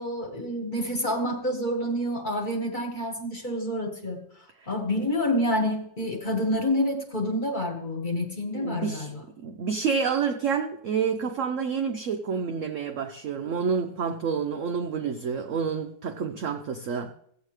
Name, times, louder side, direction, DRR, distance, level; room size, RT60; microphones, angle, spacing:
voice 1, 0.0-4.2 4.7-9.2, left 1 dB, 30° left, 2 dB, 1.4 m, -28 dB
voice 2, 8.6-9.1 9.4-17.1, right 6 dB, 75° right, 6 dB, 0.7 m, -28 dB
15.5 x 8.1 x 3.2 m, 0.69 s
omnidirectional pair, 2.0 m